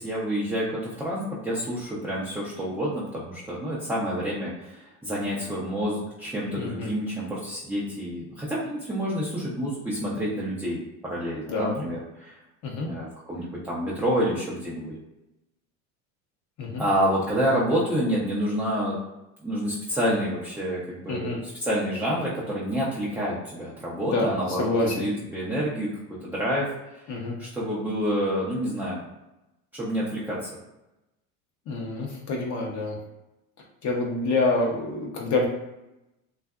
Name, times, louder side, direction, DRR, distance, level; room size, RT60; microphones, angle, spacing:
voice 1, 0.0-12.4 12.8-14.9 16.8-19.0 19.4-25.9 26.2-27.1 27.4-29.1 29.7-30.5, equal, 5° right, -7 dB, 0.4 m, -28 dB
voice 2, 6.6-6.9 11.5-11.8 12.6-12.9 16.6-16.8 21.1-21.4 24.0-24.3 24.6-25.1 27.1-27.3 31.7-33.0 33.8-35.5, left 2 dB, 40° left, -1 dB, 0.6 m, -27 dB
2.6 x 2.4 x 2.3 m, 0.94 s
hypercardioid pair, 95°, 43 cm